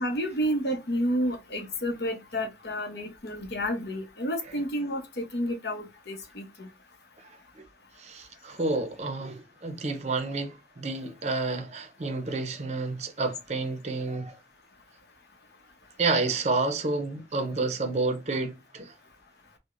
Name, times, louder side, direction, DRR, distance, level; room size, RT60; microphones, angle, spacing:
voice 1, 0.0-6.4, equal, 65° left, 0.8 m, -30 dB
voice 2, 8.0-14.4 16.0-18.9, right 3 dB, 40° right, 0.5 m, -30 dB
4.8 x 2.1 x 2.5 m
head